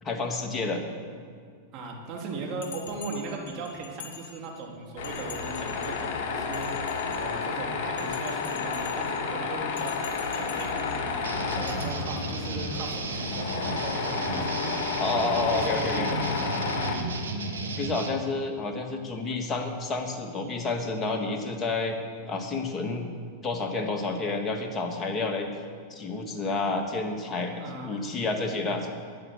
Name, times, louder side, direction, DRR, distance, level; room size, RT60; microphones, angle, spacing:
voice 1, 0.0-0.8 15.0-16.1 17.8-22.0 22.3-23.1 23.4-25.5 25.9-28.9, left 3 dB, 25° left, 3 dB, 1.8 m, -30 dB
voice 2, 1.7-6.7 7.1-11.2 11.5-17.1 27.6-28.0, right 3 dB, 45° right, 0 dB, 2.9 m, -38 dB
Bell, 2.6-4.7 5.0-6.0 6.4-7.5 8.0-9.2 9.7-11.0 11.7-11.8, left 7 dB, 70° left, 3.2 m, -45 dB
Tools, 5.0-17.0, left 5 dB, 55° left, 1.8 m, -31 dB
sound 1, 11.2-18.1, right 3 dB, 90° right, 1.4 m, -34 dB
11.5 x 9.6 x 6.7 m, 2.1 s
hypercardioid pair, 105°, 0 cm